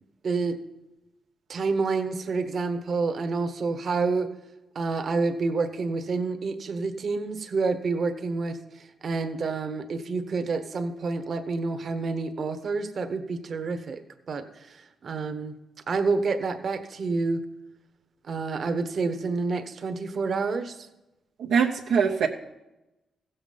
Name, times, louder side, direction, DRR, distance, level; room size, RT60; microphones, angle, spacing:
voice 1, 0.2-0.6 1.5-4.3 4.7-8.6 9.0-14.0 14.3-14.8 15.0-15.5 15.9-17.4 18.3-20.8, right 4 dB, 55° right, 9 dB, 1.2 m, -28 dB
voice 2, 21.4-22.3, right 6 dB, 80° right, 0 dB, 0.8 m, -22 dB
15.5 x 7.2 x 5.3 m, 0.96 s
cardioid pair, 65°, 0 cm